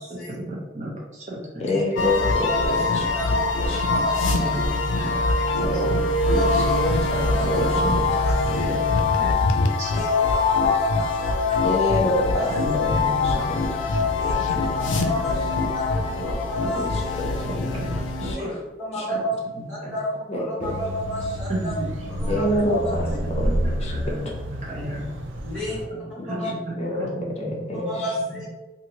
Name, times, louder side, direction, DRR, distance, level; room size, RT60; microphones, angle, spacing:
voice 1, 0.1-1.8 4.2-5.2 5.5-6.0 7.4-7.9 8.5-8.6 9.2-10.1 12.5-14.5 14.8-15.2 16.6-16.7 17.2-17.9 18.2-18.5 19.1-19.2 19.6-19.9 21.5-22.7 22.9-25.1 25.7-26.0 26.2-27.8, equal, 35° right, -3 dB, 0.7 m, -34 dB
voice 2, 1.6-3.0 3.7-3.8 6.3-6.5 6.8-7.7 11.6-12.5 13.2-13.3 16.7-16.9 18.2-18.4 18.9-19.0 20.3-20.7 22.3-22.8 23.8-23.9 26.2-26.3 26.8-27.9, left 1 dB, 35° left, -2 dB, 0.6 m, -26 dB
sound 1, 2.0-18.4, left 3 dB, 85° left, 0.4 m, -23 dB
voice 3, 3.1-4.5 5.7-5.9 6.3-7.6 8.2-8.7 9.9-11.8 12.4-12.7 14.1-17.4 18.3-18.5 18.8-19.3 19.7-20.1 20.3-21.7 22.2-23.2 25.4-25.8 26.3-26.5 27.9-28.4, left 1 dB, 5° right, -12 dB, 1.1 m, -31 dB
sound 2, 20.6-25.9, right 1 dB, 90° right, 0.4 m, -29 dB
2.8 x 2.5 x 2.8 m, 1.1 s
head